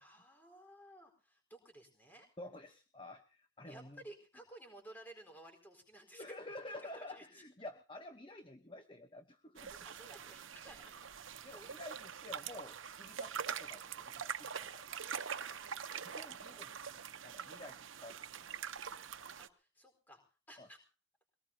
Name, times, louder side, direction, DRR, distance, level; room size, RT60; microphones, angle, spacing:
voice 1, 0.0-2.3 3.7-6.2 6.8-7.4 9.8-11.1 11.5-11.7 15.4-16.6 19.4-20.2 20.5-20.8, right 1 dB, 10° left, 4 dB, 4.4 m, -56 dB
voice 2, 2.4-4.0 6.1-9.9 11.4-14.8 16.0-16.8 17.2-18.2 20.6-20.7, left 1 dB, 25° left, 7 dB, 1.0 m, -50 dB
sound 1, 9.6-19.5, right 7 dB, 90° right, 0.9 m, -44 dB
23.0 x 18.5 x 2.8 m, 0.36 s
head